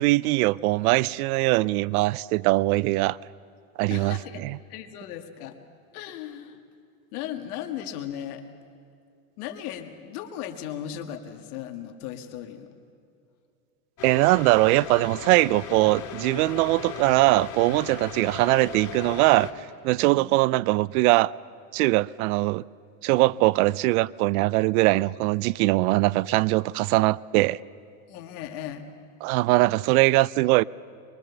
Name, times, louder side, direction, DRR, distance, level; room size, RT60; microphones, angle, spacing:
voice 1, 0.0-3.2 3.8-4.6 14.0-19.5 19.8-21.3 21.7-22.6 23.0-27.6 29.2-30.6, right 20 dB, 75° right, 0.6 m, -21 dB
voice 2, 3.9-4.4 4.7-5.6 5.9-6.6 7.1-8.4 9.4-12.7 20.0-20.3 28.1-28.9, left 10 dB, 80° left, 1.9 m, -37 dB
sound 1, 14.0-19.5, left 7 dB, 40° left, 3.1 m, -38 dB
23.0 x 23.0 x 7.0 m
supercardioid pair, 105°, 44 cm